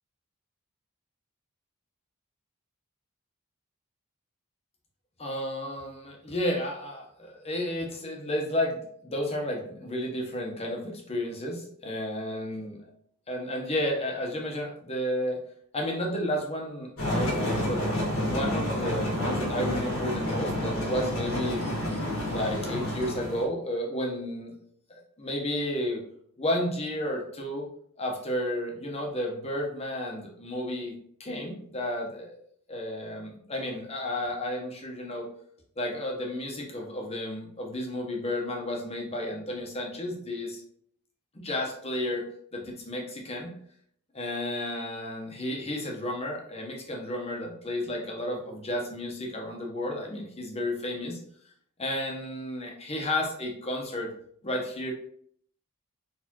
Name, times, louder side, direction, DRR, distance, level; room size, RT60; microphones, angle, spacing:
voice 1, 5.2-12.8 13.3-15.4 15.7-17.8 18.3-21.6 22.3-24.5 25.2-26.0 26.4-27.7 28.0-30.9 31.2-32.3 32.7-35.3 35.8-40.6 41.3-42.2 42.5-43.5 44.1-51.2 51.8-54.1 54.4-54.9, left 1 dB, 30° left, -1 dB, 0.9 m, -32 dB
sound 1, 17.0-23.4, left 1 dB, 70° left, 1.6 m, -29 dB
4.3 x 3.4 x 2.9 m, 0.65 s
head